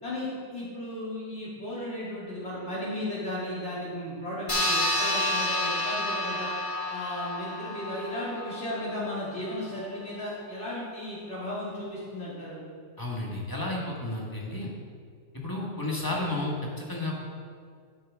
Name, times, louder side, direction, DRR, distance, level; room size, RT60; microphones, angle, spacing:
voice 1, 0.0-6.5 6.9-12.6 15.5-15.6, left 1 dB, 50° left, -8 dB, 2.9 m, -35 dB
sound 1, 4.5-9.4, left 1 dB, 35° left, 1.9 m, -30 dB
voice 2, 13.0-14.7 15.3-17.2, left 2 dB, 15° left, -3 dB, 1.4 m, -32 dB
11.0 x 7.5 x 3.6 m, 2.1 s
omnidirectional pair, 1.5 m